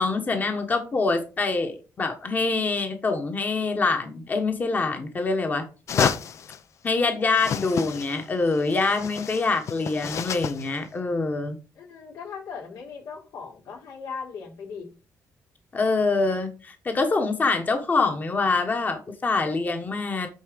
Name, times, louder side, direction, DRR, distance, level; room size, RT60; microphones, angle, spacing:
voice 1, 0.0-5.7 5.9-6.2 6.8-11.6 15.7-20.3, left 3 dB, 30° left, 1.3 m, -25 dB
sound 1, 5.9-6.6 7.3-8.2 8.5-10.7, left 7 dB, 55° left, 0.7 m, -30 dB
voice 2, 11.7-14.9, left 5 dB, 85° left, 3.4 m, -38 dB
9.6 x 4.3 x 5.1 m
cardioid pair, 140°, 6 cm